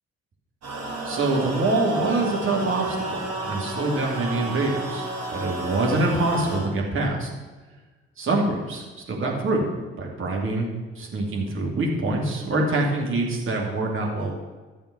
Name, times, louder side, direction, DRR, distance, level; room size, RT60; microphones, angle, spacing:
sound 1, 0.6-6.6, right 2 dB, 55° right, 4.4 m, -31 dB
voice 1, 1.0-7.3 8.2-9.6 10.0-10.7 11.0-14.4, right 2 dB, 40° right, -1 dB, 2.6 m, -25 dB
12.0 x 7.1 x 6.0 m, 1.3 s
figure-of-eight pair, 50°, 31 cm